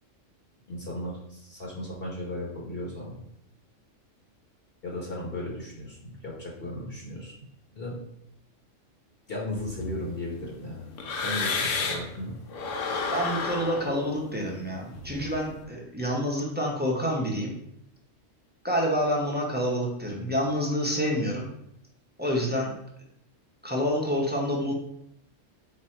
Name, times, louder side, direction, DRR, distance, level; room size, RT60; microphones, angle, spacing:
voice 1, 0.7-3.2 4.8-7.3 7.7-8.0 9.3-10.9 11.2-12.3, left 1 dB, 50° left, -3 dB, 1.1 m, -36 dB
sound 1, 9.5-12.2 12.5-15.6, left 4 dB, 75° left, 1.0 m, -32 dB
voice 2, 13.1-17.5 18.6-21.5 22.2-22.7 23.6-24.7, equal, 10° right, -2 dB, 0.6 m, -28 dB
4.2 x 2.7 x 4.3 m, 0.75 s
omnidirectional pair, 1.3 m